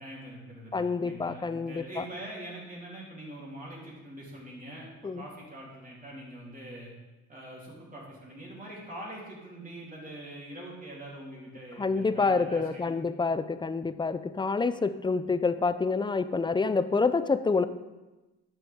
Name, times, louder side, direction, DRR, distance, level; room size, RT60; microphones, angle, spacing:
voice 1, 0.0-6.9 7.3-13.0, right 1 dB, 30° right, -5 dB, 3.3 m, -44 dB
voice 2, 0.7-2.0 5.0-5.2 11.8-17.6, left 4 dB, 15° left, 13 dB, 0.4 m, -27 dB
11.5 x 7.0 x 3.6 m, 1.1 s
cardioid pair, 90°, 30 cm